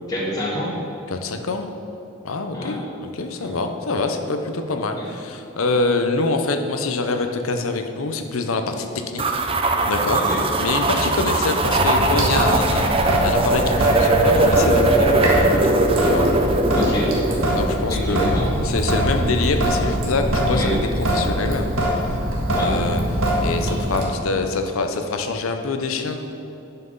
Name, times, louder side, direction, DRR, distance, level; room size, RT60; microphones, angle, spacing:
voice 1, 0.1-0.7 2.5-2.7 3.4-3.5 4.9-5.0 10.1-10.4 16.7-17.1 17.9-18.5 20.5-20.7 22.5-22.7, left 1 dB, 20° left, -6 dB, 1.6 m, -27 dB
voice 2, 1.1-1.7 2.2-9.2 9.9-16.3 17.5-18.2 18.6-21.7 22.0-22.2 22.6-23.0 23.4-26.3, left 3 dB, 85° left, 6 dB, 0.7 m, -25 dB
sound 1, 9.2-17.7, right 2 dB, 25° right, 0.4 m, -20 dB
Sink (filling or washing) / Drip, 11.6-24.1, equal, 80° right, 1.6 m, -23 dB
11.0 x 5.9 x 3.9 m, 3.0 s
head